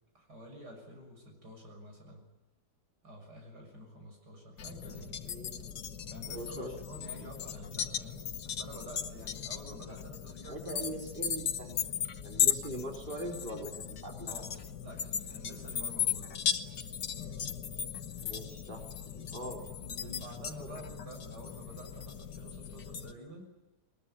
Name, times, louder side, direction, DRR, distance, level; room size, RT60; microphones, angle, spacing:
voice 1, 0.1-2.3 3.0-5.2 6.1-10.8 14.3-16.4 19.3-23.5, right 1 dB, 75° right, 2 dB, 7.1 m, -49 dB
sound 1, 4.6-23.1, left 8 dB, 75° left, 1.8 m, -37 dB
voice 2, 5.3-5.8 6.2-6.7 7.2-7.3 10.5-14.4 18.2-18.8 19.1-19.7 20.0-20.1 20.7-20.8, right 1 dB, 30° right, 1 dB, 4.2 m, -42 dB
21.5 x 20.5 x 9.9 m, 1.1 s
omnidirectional pair, 1.8 m